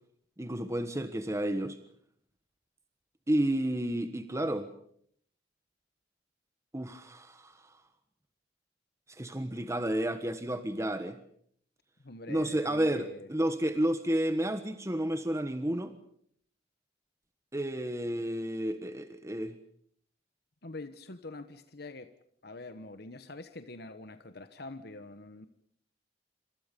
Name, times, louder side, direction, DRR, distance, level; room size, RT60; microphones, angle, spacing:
voice 1, 0.4-1.8 3.3-4.7 6.7-7.7 9.1-11.2 12.3-15.9 17.5-19.6, right 1 dB, 15° right, 9 dB, 1.3 m, -31 dB
voice 2, 12.0-13.3 20.6-22.1 22.4-25.5, left 2 dB, 60° left, 10 dB, 1.3 m, -45 dB
28.0 x 27.0 x 5.3 m, 0.64 s
head